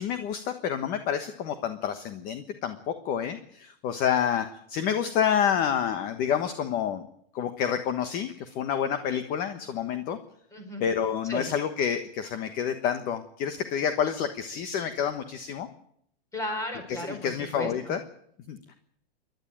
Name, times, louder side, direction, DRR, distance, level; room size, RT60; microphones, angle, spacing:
voice 1, 0.0-7.0 7.3-10.2 10.8-15.7 16.9-18.0 18.5-18.7, left 8 dB, 30° left, 9 dB, 1.3 m, -28 dB
voice 2, 10.5-10.8 11.3-11.5 16.3-18.0, left 1 dB, 10° left, 6 dB, 4.4 m, -35 dB
28.5 x 12.0 x 8.9 m, 0.71 s
supercardioid pair, 165°, 30 cm